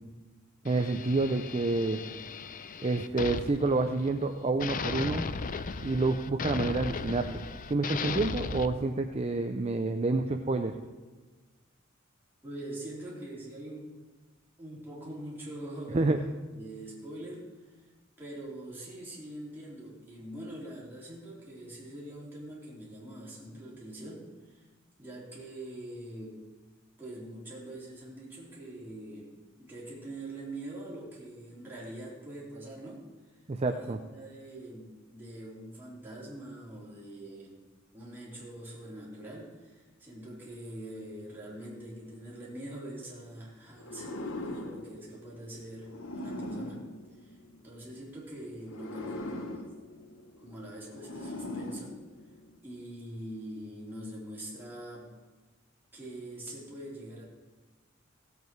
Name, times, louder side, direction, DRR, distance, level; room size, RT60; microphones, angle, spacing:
sound 1, 0.6-4.3 4.6-8.7, left 4 dB, 40° left, 0.5 m, -37 dB
voice 1, 0.6-2.0 2.8-5.3 5.8-7.4 7.7-10.8 15.9-16.2 33.5-34.0, right 3 dB, 30° right, 6 dB, 0.5 m, -28 dB
voice 2, 12.4-13.9 14.6-16.3 16.6-17.9 18.2-24.7 25.0-26.4 27.0-33.0 33.6-37.6 37.9-46.8 47.2-47.4 47.6-49.7 50.4-52.0 52.6-55.1 55.9-57.2, right 1 dB, 10° right, -6 dB, 3.6 m, -44 dB
sound 2, 43.8-47.9 48.6-52.6, left 1 dB, 80° left, 1.1 m, -41 dB
16.5 x 8.2 x 4.6 m, 1.3 s
head